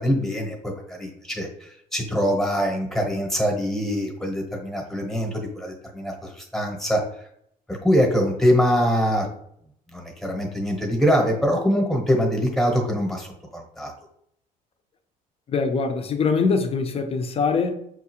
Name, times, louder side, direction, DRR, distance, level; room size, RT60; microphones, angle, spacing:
voice 1, 0.0-7.3 7.7-9.3 9.9-13.9, equal, ahead, 1.0 m, -23 dB
voice 2, 15.5-17.8, left 4 dB, 35° left, 0.6 m, -23 dB
5.8 x 2.4 x 2.9 m
cardioid pair, 110°, 17 cm